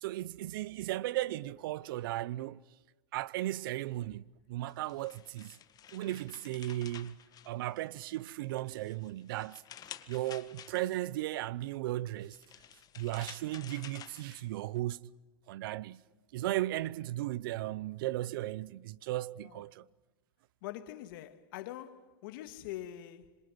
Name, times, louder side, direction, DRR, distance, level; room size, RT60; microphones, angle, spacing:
voice 1, 0.0-2.6 3.1-5.6 5.9-7.1 7.5-9.6 10.1-12.4 13.0-15.1 15.5-16.0 16.3-19.8, right 15 dB, 70° right, 0.8 m, -36 dB
sound 1, 4.7-8.0 8.5-11.2 12.1-14.8, left 10 dB, 30° left, 1.8 m, -52 dB
voice 2, 20.6-23.4, left 13 dB, 65° left, 2.2 m, -44 dB
26.5 x 26.5 x 7.7 m
hypercardioid pair, 115°, 12 cm